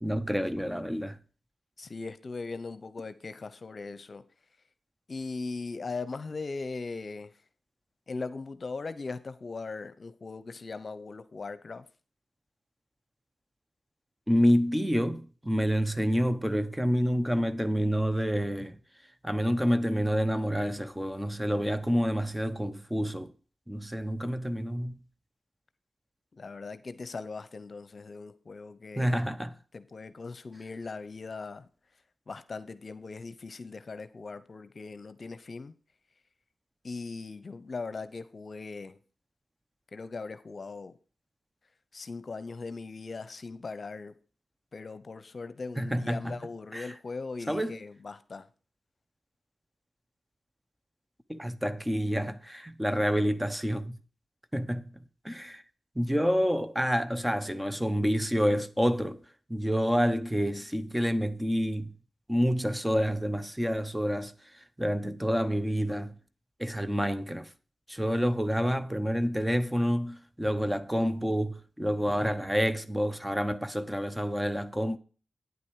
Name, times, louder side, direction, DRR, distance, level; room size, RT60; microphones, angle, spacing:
voice 1, 0.0-1.2 14.3-18.8 19.2-23.3 23.7-25.0 29.0-29.5 45.8-46.3 46.7-46.9 47.5-47.8 51.3-54.0 54.5-54.9 55.2-55.6 56.0-59.2 59.5-61.9 62.3-66.2 66.6-67.5 67.9-75.0, equal, 10° right, 1.0 m, -28 dB
voice 2, 1.8-4.2 5.1-7.3 8.1-11.9 26.3-29.2 29.7-31.7 32.3-35.7 36.8-39.0 39.9-41.0 41.9-44.2 44.7-48.5, left 4 dB, 55° left, 0.9 m, -39 dB
9.5 x 8.3 x 4.7 m
cardioid pair, 55°, 0 cm